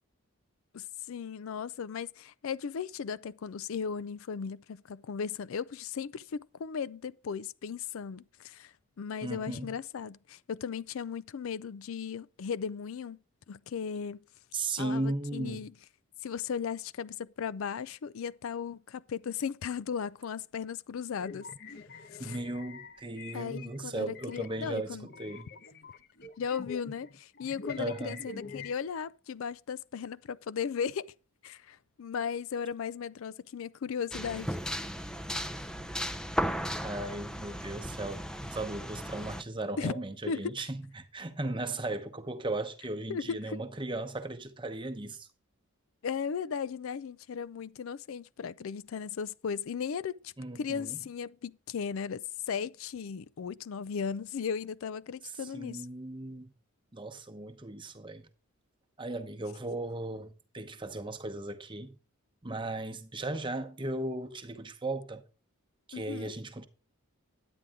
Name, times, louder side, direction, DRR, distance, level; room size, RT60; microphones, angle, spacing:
voice 1, 0.7-13.2 13.5-14.2 14.8-15.7 16.2-21.5 21.9-22.4 23.3-25.1 26.4-31.1 31.4-34.9 39.8-39.9 40.3-40.7 43.1-43.6 46.0-55.9 65.9-66.3, left 6 dB, 70° left, 0.4 m, -36 dB
voice 2, 9.2-9.7 14.5-15.6 22.2-25.5 27.8-28.2 36.8-45.3 50.4-51.0 55.5-56.5 56.9-58.3 59.0-61.9 62.4-65.2 65.9-66.7, right 2 dB, 25° right, 0.9 m, -37 dB
sound 1, 21.2-23.8 24.1-28.7, left 4 dB, 50° left, 0.8 m, -46 dB
sound 2, 34.1-39.4, equal, 5° left, 0.5 m, -35 dB
10.0 x 9.1 x 3.6 m
head